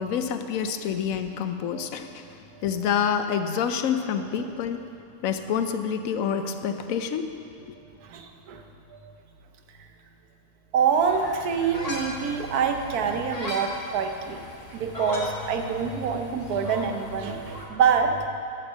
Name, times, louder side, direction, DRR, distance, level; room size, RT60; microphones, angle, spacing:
voice 1, 0.0-2.3 2.6-4.9 5.2-7.3 7.7-7.8, left 7 dB, 70° left, 8 dB, 0.9 m, -27 dB
voice 2, 8.1-8.6 10.7-14.4 14.7-18.3, right 6 dB, 90° right, 5 dB, 1.3 m, -26 dB
sound 1, 10.9-17.7, left 1 dB, 25° left, 1.3 m, -38 dB
10.5 x 5.2 x 7.3 m, 2.5 s
omnidirectional pair, 1.6 m